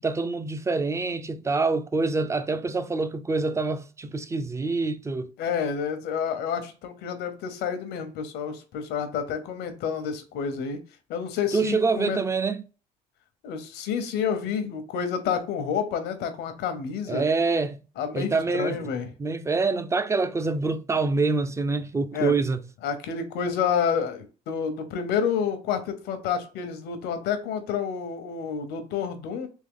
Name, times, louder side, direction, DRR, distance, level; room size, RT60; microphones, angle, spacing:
voice 1, 0.0-5.3 11.5-12.6 17.1-17.8 18.1-18.9 19.2-22.6, right 3 dB, 15° right, 0.4 m, -26 dB
voice 2, 5.4-10.8 11.1-12.2 13.4-17.3 18.0-19.1 22.1-22.3 22.8-29.5, left 7 dB, 85° left, 0.9 m, -29 dB
3.7 x 3.2 x 3.6 m
cardioid pair, 110°, 17 cm